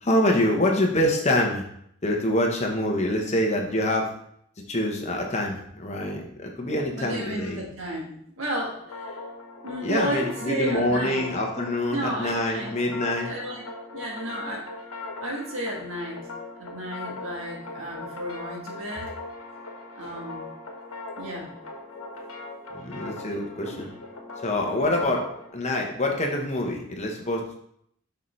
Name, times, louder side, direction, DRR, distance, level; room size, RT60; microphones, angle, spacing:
voice 1, 0.0-1.6 2.0-4.1 4.7-7.6 9.8-13.3 22.7-23.9 24.4-27.6, left 1 dB, 30° left, 1 dB, 1.0 m, -25 dB
voice 2, 7.0-9.2 9.6-11.2 11.9-12.7 13.2-13.6 13.9-14.7 15.2-16.3 16.6-19.1 19.9-20.5 21.2-21.5 23.6-23.9 24.8-25.0, equal, 65° right, -2 dB, 1.5 m, -33 dB
sound 1, 8.8-25.5, left 2 dB, 80° left, 1.3 m, -39 dB
6.6 x 5.5 x 3.2 m, 0.70 s
head